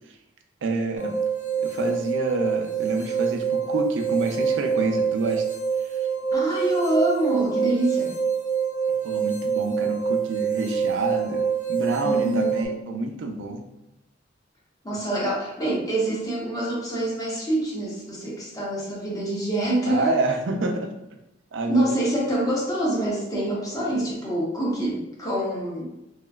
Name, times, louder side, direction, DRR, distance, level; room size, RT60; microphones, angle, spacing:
voice 1, 0.6-1.2 1.6-5.4 9.0-13.6 14.9-15.0 19.8-20.9 21.5-22.0, right 2 dB, 70° right, 5 dB, 0.4 m, -28 dB
sound 1, 1.0-12.7, right 7 dB, 65° left, 0.9 m, -26 dB
voice 2, 6.3-8.1 12.0-12.7 14.8-20.1 21.7-25.9, right 1 dB, 20° left, -5 dB, 0.7 m, -26 dB
2.9 x 2.3 x 2.3 m, 0.89 s
head